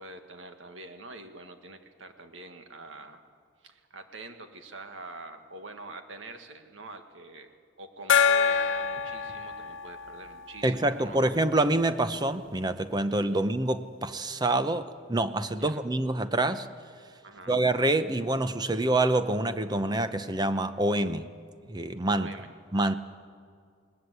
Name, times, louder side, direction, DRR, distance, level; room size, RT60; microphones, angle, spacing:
voice 1, 0.0-3.2 3.6-7.5 7.8-11.2 13.3-13.4 15.6-15.8 17.2-17.5 22.1-22.5 22.7-22.9, right 2 dB, 85° right, 6 dB, 1.9 m, -45 dB
Gong, 8.1-11.4, left 6 dB, 85° left, 0.9 m, -27 dB
voice 2, 10.6-16.7 17.5-21.3 21.7-22.3 22.7-22.9, right 2 dB, 20° right, 11 dB, 0.8 m, -26 dB
21.0 x 19.5 x 8.3 m, 2.2 s
head